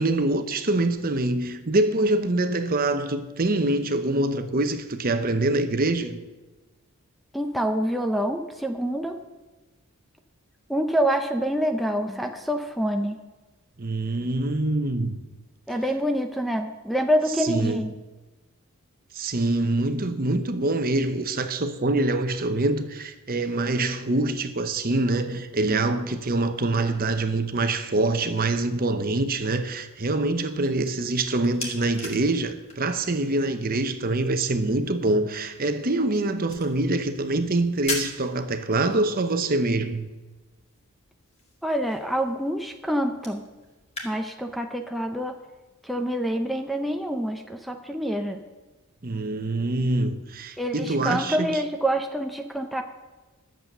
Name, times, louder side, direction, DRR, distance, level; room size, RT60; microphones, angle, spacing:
voice 1, 0.0-6.2 13.8-15.2 17.4-17.9 19.1-40.1 49.0-51.6, right 2 dB, 40° right, 0.9 m, -25 dB
voice 2, 7.3-9.2 10.7-13.2 15.7-17.9 41.6-43.4 44.0-45.4 45.8-48.4 50.6-52.8, equal, ahead, 0.6 m, -26 dB
sound 1, 30.4-44.1, left 2 dB, 30° left, 2.0 m, -42 dB
11.5 x 7.7 x 6.8 m
head